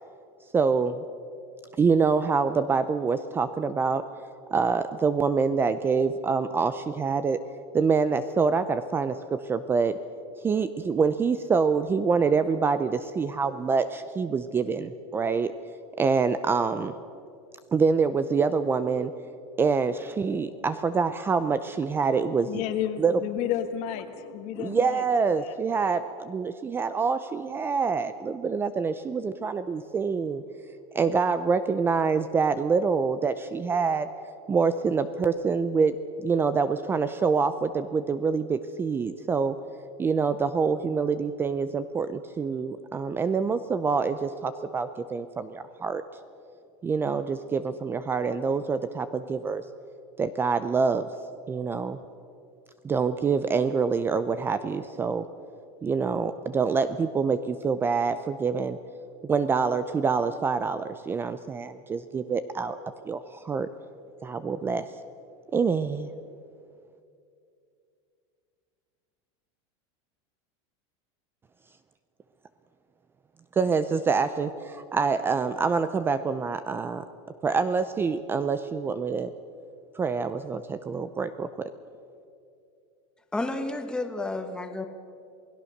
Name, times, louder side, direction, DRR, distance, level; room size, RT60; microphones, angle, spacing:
voice 1, 0.5-1.0 1.8-4.0 4.5-7.4 7.7-10.0 10.4-15.5 16.0-16.9 17.7-19.1 19.6-22.6 23.0-23.2 24.6-30.4 30.9-34.1 34.5-39.5 40.0-46.0 46.8-49.6 50.2-51.1 51.5-52.0 52.8-55.3 55.8-58.8 59.2-62.8 63.0-63.7 64.2-64.9 65.5-66.1 73.6-77.0 77.4-79.3 79.9-81.7, right 5 dB, 15° right, 12 dB, 0.5 m, -26 dB
voice 2, 22.5-25.6, left 10 dB, 50° left, 8 dB, 1.7 m, -32 dB
voice 3, 83.3-84.8, left 2 dB, 5° left, 6 dB, 1.4 m, -31 dB
27.5 x 18.0 x 6.5 m, 2.5 s
supercardioid pair, 155°, 15 cm